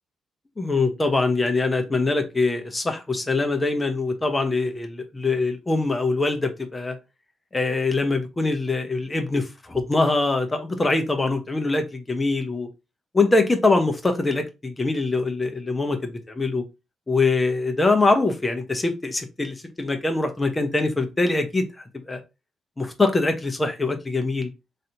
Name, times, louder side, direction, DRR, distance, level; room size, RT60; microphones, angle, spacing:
voice 1, 0.6-7.0 7.5-12.7 13.1-16.6 17.1-22.2 22.8-24.5, left 3 dB, 25° left, 0.8 m, -23 dB
3.2 x 2.7 x 2.8 m
supercardioid pair, 55°, 0 cm